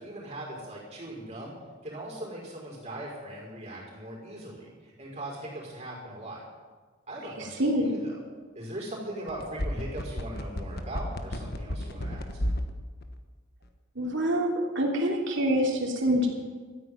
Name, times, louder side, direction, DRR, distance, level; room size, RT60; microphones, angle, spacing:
voice 1, 0.0-1.5 1.8-6.4 7.1-8.2 8.5-12.2, right 1 dB, 30° right, -3 dB, 5.2 m, -40 dB
voice 2, 7.6-7.9 13.9-16.3, equal, 55° right, 0 dB, 3.0 m, -26 dB
sound 1, 9.3-12.7 13.0-13.1, equal, 45° left, 1.2 m, -31 dB
13.5 x 9.7 x 9.5 m, 1.4 s
head